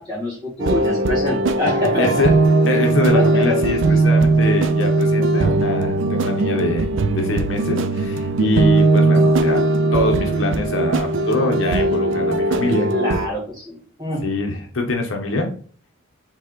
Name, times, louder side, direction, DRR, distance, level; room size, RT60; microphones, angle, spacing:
voice 1, 0.0-2.1 3.1-3.6 12.9-14.2, left 1 dB, 20° right, -5 dB, 2.0 m, -25 dB
sound 1, 0.6-13.3, right 2 dB, 60° right, 0.4 m, -19 dB
voice 2, 1.9-2.3 2.7-9.6 9.9-12.9 14.2-15.5, left 2 dB, 65° left, 3 dB, 0.9 m, -24 dB
4.5 x 3.6 x 3.0 m, 0.43 s
head